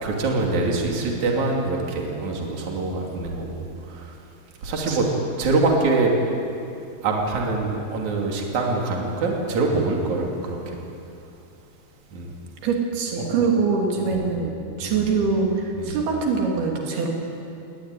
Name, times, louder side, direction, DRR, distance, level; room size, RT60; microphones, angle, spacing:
voice 1, 0.0-3.6 3.9-4.1 4.6-5.1 5.4-6.1 7.0-10.8 12.1-12.3 13.2-13.3 14.1-14.2 14.8-15.1 15.7-16.1, right 3 dB, 50° right, -1 dB, 3.9 m, -24 dB
voice 2, 12.6-14.5 14.8-17.1, right 4 dB, 80° right, 0 dB, 4.6 m, -23 dB
21.5 x 18.5 x 9.8 m, 2.7 s
omnidirectional pair, 4.4 m